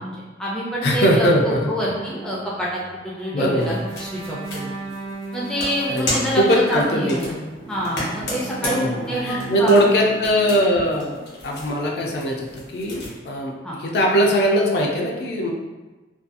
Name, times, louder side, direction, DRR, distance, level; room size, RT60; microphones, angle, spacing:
voice 1, 0.0-4.7 5.3-7.4 7.7-9.9 13.6-13.8, equal, 5° left, -6 dB, 0.4 m, -27 dB
voice 2, 0.8-1.7 3.3-3.8 5.9-7.2 8.6-11.2 11.4-15.5, equal, 65° left, -1 dB, 0.4 m, -20 dB
sound 1, 1.9-11.1, right 3 dB, 75° right, 0.6 m, -37 dB
sound 2, 3.5-13.1, left 1 dB, 85° left, 1.0 m, -34 dB
2.6 x 2.3 x 2.5 m, 1.2 s
head